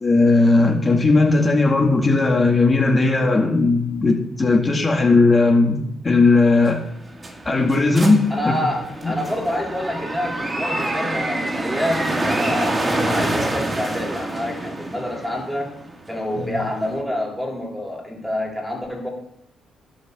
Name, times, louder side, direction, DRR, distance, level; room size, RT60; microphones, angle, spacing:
voice 1, 0.0-5.8 6.0-6.8 7.5-8.5 9.0-9.2 16.4-16.6, left 3 dB, 25° left, 1 dB, 2.0 m, -17 dB
sound 1, 6.7-17.0, right 1 dB, 25° right, 2.0 m, -27 dB
voice 2, 8.3-15.7 16.1-19.1, left 1 dB, ahead, -1 dB, 3.5 m, -27 dB
11.0 x 6.0 x 6.7 m, 0.78 s
cardioid pair, 90°, 0 cm